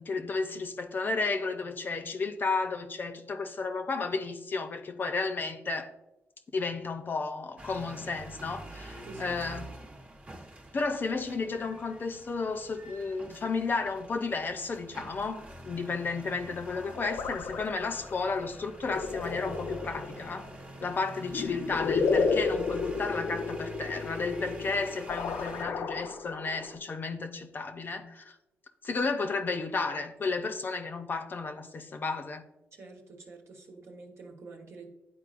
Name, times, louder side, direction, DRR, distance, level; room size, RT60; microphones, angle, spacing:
voice 1, 0.0-5.9 6.5-9.6 10.7-20.5 20.8-28.3 28.8-32.4, left 4 dB, 45° left, 0.6 m, -33 dB
sound 1, 7.6-25.6, right 1 dB, 30° right, 1.0 m, -46 dB
voice 2, 9.0-9.4 32.7-34.9, right 3 dB, 70° right, 1.2 m, -47 dB
sound 2, 16.7-26.8, left 4 dB, 90° left, 0.5 m, -33 dB
10.0 x 4.3 x 2.5 m
cardioid pair, 100°, 5 cm